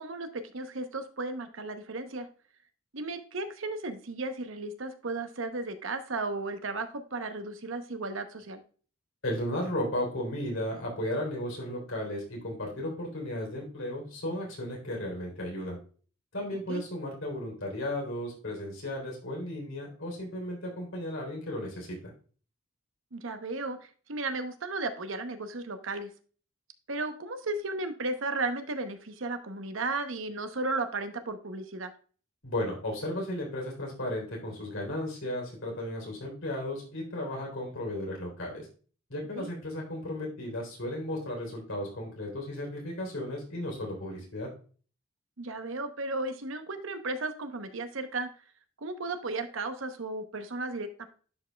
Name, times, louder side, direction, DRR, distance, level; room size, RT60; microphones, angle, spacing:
voice 1, 0.0-2.3 2.9-8.6 16.7-16.8 23.1-23.8 24.1-26.1 26.9-31.9 39.3-39.5 45.4-48.3 48.8-51.1, right 2 dB, 65° right, 8 dB, 0.9 m, -34 dB
voice 2, 9.2-15.8 16.3-22.1 32.4-38.7 39.1-44.5, left 1 dB, 70° left, -1 dB, 3.5 m, -35 dB
11.0 x 5.3 x 2.3 m, 0.40 s
head